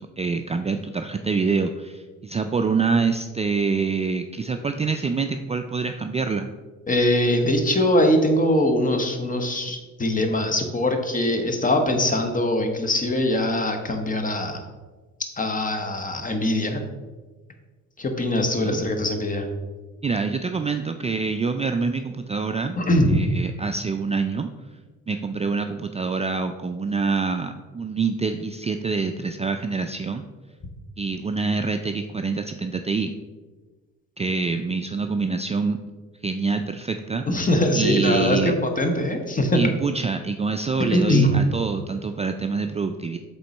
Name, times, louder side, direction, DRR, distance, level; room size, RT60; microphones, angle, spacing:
voice 1, 0.0-6.5 18.6-18.8 20.0-24.5 25.1-30.2 31.0-33.1 34.2-35.8 36.2-37.3 37.7-38.5 39.5-43.2, right 4 dB, 20° right, 6 dB, 0.3 m, -26 dB
voice 2, 6.9-14.6 15.4-16.8 18.0-19.4 22.8-23.2 37.3-39.6 40.8-41.5, left 1 dB, 25° left, 5 dB, 1.1 m, -22 dB
7.8 x 3.8 x 4.1 m, 1.3 s
cardioid pair, 90°, 30 cm